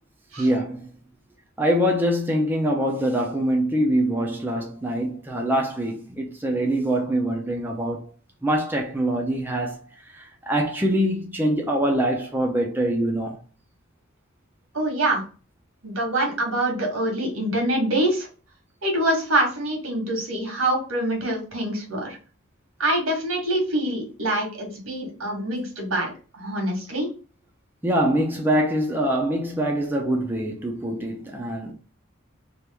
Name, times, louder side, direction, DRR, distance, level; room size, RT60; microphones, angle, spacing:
voice 1, 0.4-0.9 1.6-8.1 8.4-9.8 10.1-13.4 27.8-31.7, right 1 dB, 10° right, 0.5 m, -24 dB
voice 2, 14.7-15.2 15.8-18.3 18.8-22.2 22.8-26.1 26.4-27.1, right 1 dB, 85° right, 1.4 m, -25 dB
3.0 x 2.5 x 3.4 m
head